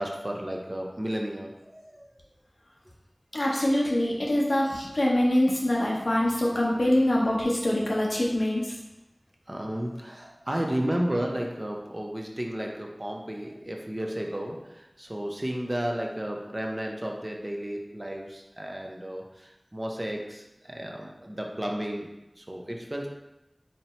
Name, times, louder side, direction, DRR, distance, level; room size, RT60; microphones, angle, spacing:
voice 1, 0.0-2.1 9.5-22.1 22.4-23.1, equal, 35° right, 0 dB, 0.6 m, -33 dB
voice 2, 3.3-8.7, left 1 dB, 90° left, -3 dB, 0.7 m, -24 dB
4.2 x 2.0 x 4.2 m, 0.94 s
wide cardioid pair, 40°, 0 cm